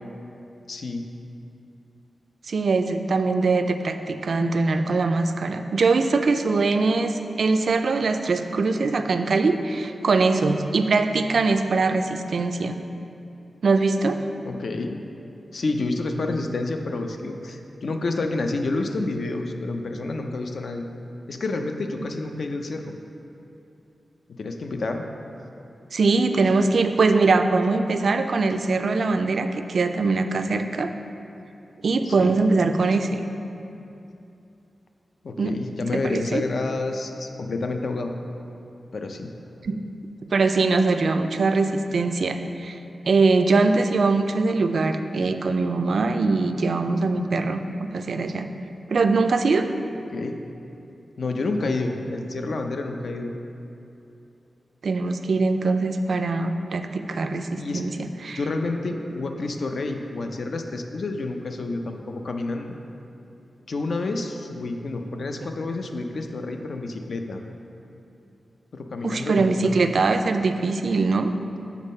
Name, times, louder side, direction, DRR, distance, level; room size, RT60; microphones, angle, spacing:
voice 1, 0.7-1.1 14.4-15.0 15.5-20.9 21.3-22.9 24.3-25.0 32.1-32.4 35.2-38.1 38.9-39.3 50.1-50.4 51.2-53.3 57.6-58.0 58.3-62.8 63.7-67.4 68.7-69.8, left 2 dB, 60° left, 4 dB, 0.5 m, -29 dB
voice 2, 2.5-12.7 13.6-14.2 25.9-30.9 31.8-33.2 35.4-35.6 35.9-36.4 39.6-39.8 40.3-42.8 43.1-48.5 48.9-49.7 54.8-58.4 69.0-71.3, right 3 dB, 60° right, 7 dB, 0.3 m, -22 dB
7.3 x 4.1 x 5.4 m, 2.8 s
wide cardioid pair, 155°, 0 cm